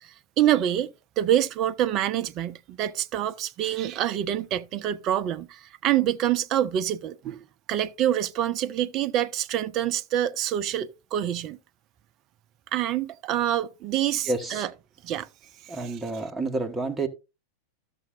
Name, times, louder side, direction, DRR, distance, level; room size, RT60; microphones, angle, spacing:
voice 1, 0.0-11.6 12.7-14.7 15.0-15.3 15.8-15.9, right 11 dB, 35° right, 0.6 m, -26 dB
voice 2, 14.2-14.7 15.7-17.1, right 3 dB, 5° right, 1.5 m, -29 dB
13.5 x 6.9 x 2.6 m
figure-of-eight pair, 90°, 0 cm